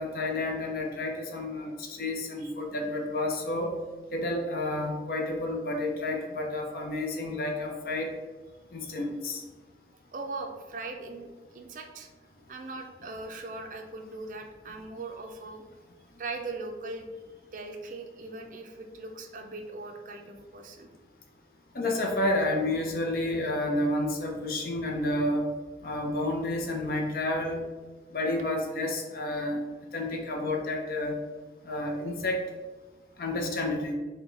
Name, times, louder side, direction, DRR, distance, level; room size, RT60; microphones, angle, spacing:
voice 1, 0.0-3.7 4.1-8.1 8.7-9.4 21.7-25.5 25.8-27.6 28.1-29.6 29.9-31.2 31.6-32.4 33.2-33.9, left 1 dB, 55° left, 2 dB, 0.6 m, -30 dB
voice 2, 10.1-12.1 12.5-15.6 16.2-17.1 17.5-20.9, right 3 dB, 45° right, 4 dB, 0.4 m, -40 dB
4.6 x 2.2 x 3.8 m, 1.3 s
head